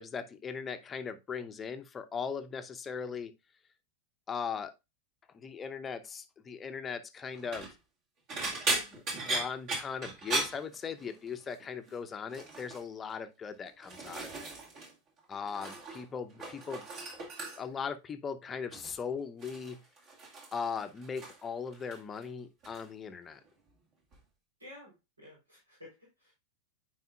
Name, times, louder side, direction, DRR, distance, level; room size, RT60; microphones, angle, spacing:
voice 1, 0.0-3.3 4.3-4.7 5.3-7.7 8.7-14.5 15.3-16.8 17.6-19.8 20.5-23.4, left 6 dB, 20° left, 0.7 m, -39 dB
sound 1, 7.3-7.7 8.3-11.3 11.6-12.0 12.3-12.8 13.5-14.9 15.2-16.0 16.3-17.8 18.7-19.0 19.4-21.5 21.7-22.3 22.6-22.8 24.1-24.2, right 2 dB, 40° right, 2.0 m, -37 dB
voice 2, 24.6-24.9 25.2-26.3, left 2 dB, 80° right, 3.8 m, -52 dB
9.2 x 5.0 x 2.3 m
figure-of-eight pair, 90°, 0 cm